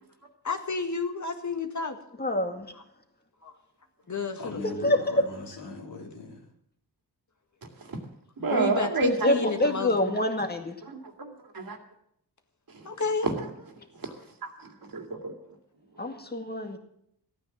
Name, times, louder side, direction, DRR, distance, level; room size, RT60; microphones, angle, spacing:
voice 1, 0.4-2.0 2.7-2.8 3.4-3.5 4.1-4.6 8.4-10.0 12.8-13.3 14.0-14.1, left 4 dB, 45° left, 6 dB, 1.9 m, -31 dB
voice 2, 2.2-2.7 4.8-5.2 9.2-10.8 16.0-16.8, left 1 dB, 25° left, 5 dB, 2.1 m, -26 dB
voice 3, 4.4-6.4, left 3 dB, 85° left, 0 dB, 3.3 m, -39 dB
voice 4, 8.4-9.5 10.0-10.1 10.8-11.8 13.2-13.4 14.4-15.3, right 3 dB, 55° right, 4 dB, 2.3 m, -29 dB
14.0 x 9.4 x 7.3 m, 0.73 s
cardioid pair, 80°, 40 cm